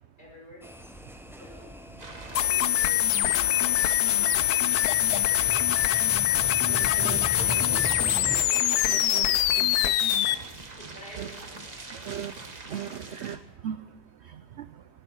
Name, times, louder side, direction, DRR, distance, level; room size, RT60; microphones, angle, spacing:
voice 1, 0.2-0.6 1.3-1.7 2.4-5.6 6.7-9.2 9.5-11.8 12.7-13.2 13.5-13.9, left 1 dB, 35° left, -2 dB, 5.9 m, -49 dB
sound 1, 0.6-8.4, equal, 5° right, 0.4 m, -40 dB
sound 2, 2.0-13.4, right 3 dB, 30° right, 1.3 m, -42 dB
sound 3, 2.3-10.3, left 13 dB, 85° left, 1.2 m, -24 dB
voice 2, 6.7-7.2 7.5-8.4 8.9-9.2 11.2-11.3 11.9-12.3 12.7-13.8 14.3-14.6, right 9 dB, 65° right, 12 dB, 0.7 m, -38 dB
19.5 x 12.0 x 4.5 m, 1.1 s
omnidirectional pair, 1.6 m